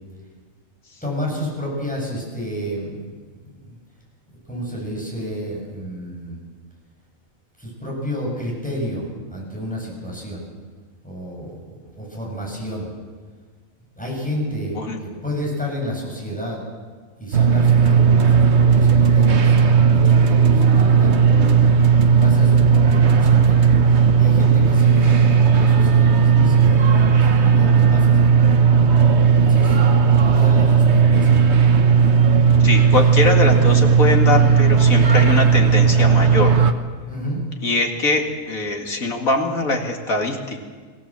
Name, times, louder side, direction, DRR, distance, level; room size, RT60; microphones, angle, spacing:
voice 1, 1.0-3.2 3.4-3.8 4.5-6.4 7.6-10.4 11.0-12.9 14.0-16.6 17.2-28.5 29.4-29.8 30.2-31.4 37.1-37.4, equal, 5° left, -3 dB, 7.5 m, -30 dB
sound 1, 17.3-36.7, right 6 dB, 55° right, 1.3 m, -15 dB
voice 2, 32.6-36.5 37.6-40.6, left 3 dB, 80° left, 3 dB, 2.6 m, -22 dB
22.5 x 16.0 x 7.6 m, 1.5 s
omnidirectional pair, 1.4 m